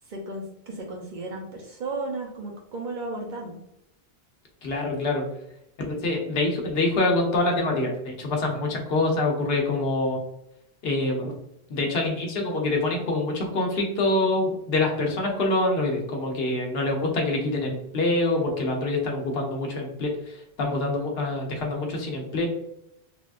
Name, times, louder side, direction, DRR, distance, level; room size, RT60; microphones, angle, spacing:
voice 1, 0.0-3.6, right 2 dB, 55° right, 0 dB, 0.6 m, -34 dB
voice 2, 4.6-5.2 5.8-10.2 10.8-11.3 11.7-22.5, left 2 dB, 70° left, 1 dB, 0.9 m, -25 dB
3.4 x 2.3 x 2.4 m, 0.80 s
omnidirectional pair, 1.1 m